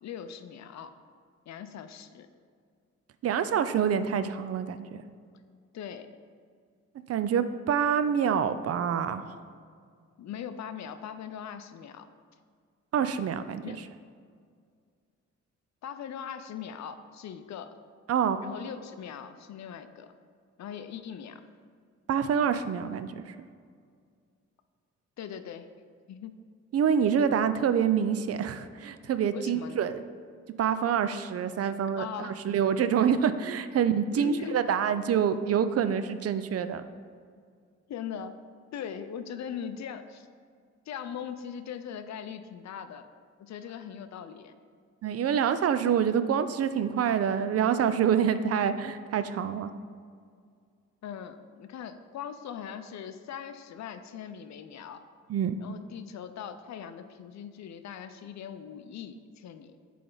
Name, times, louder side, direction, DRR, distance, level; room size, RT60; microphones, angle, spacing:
voice 1, 0.0-0.9 1.5-2.3 5.7-6.1 10.2-12.1 13.6-13.8 15.8-17.7 18.4-20.1 20.6-21.4 25.2-25.7 26.1-26.4 29.3-29.9 32.0-32.4 34.1-34.6 37.9-38.4 38.7-40.3 40.9-43.1 43.4-44.5 51.0-55.0 55.6-59.8, left 8 dB, 70° left, 10 dB, 0.5 m, -40 dB
voice 2, 3.2-5.0 7.1-9.4 12.9-13.8 18.1-18.4 22.1-23.3 26.7-30.0 30.6-36.9 45.0-49.7 55.3-55.6, right 8 dB, 55° right, 12 dB, 0.4 m, -26 dB
8.6 x 3.4 x 3.9 m, 2.1 s
cardioid pair, 65°, 29 cm